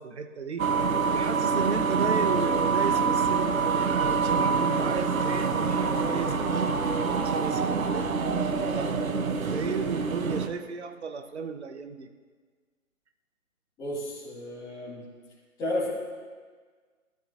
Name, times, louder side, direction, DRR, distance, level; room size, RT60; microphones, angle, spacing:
voice 1, 0.0-6.8 7.2-9.0 9.3-12.1, right 5 dB, 55° right, 8 dB, 0.9 m, -34 dB
sound 1, 0.6-10.5, right 5 dB, 80° right, 0.9 m, -26 dB
voice 2, 13.8-15.0 15.6-15.9, left 1 dB, 10° left, -10 dB, 2.0 m, -32 dB
15.5 x 13.0 x 2.5 m, 1.5 s
figure-of-eight pair, 150°, 41 cm